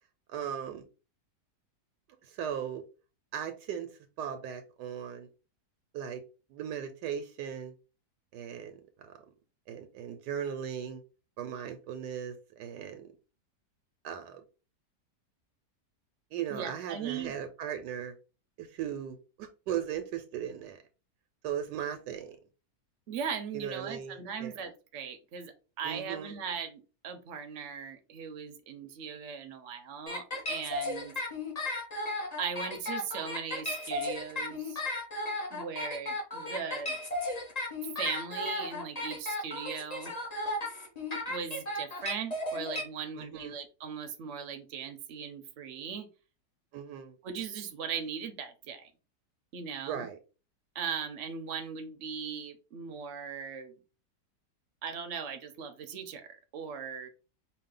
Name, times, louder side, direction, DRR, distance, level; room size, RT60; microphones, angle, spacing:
voice 1, 0.3-0.8 2.3-2.8 3.3-3.9 4.2-5.3 5.9-6.2 6.5-7.7 8.3-9.2 9.7-11.0 11.4-13.1 14.0-14.4 16.3-18.1 18.6-20.8 21.4-22.4 23.5-24.5 25.8-26.3 43.2-43.6 46.7-47.1 49.8-50.2, right 9 dB, 80° right, 7 dB, 1.3 m, -37 dB
voice 2, 16.5-17.3 23.1-31.2 32.4-34.8 35.5-37.0 38.0-40.1 41.3-46.1 47.2-48.9 49.5-50.1 50.7-53.7 54.8-57.1, right 7 dB, 55° right, 6 dB, 0.9 m, -39 dB
sound 1, 30.1-42.8, left 2 dB, 25° left, 1.2 m, -34 dB
5.0 x 2.4 x 3.7 m, 0.33 s
omnidirectional pair, 1.8 m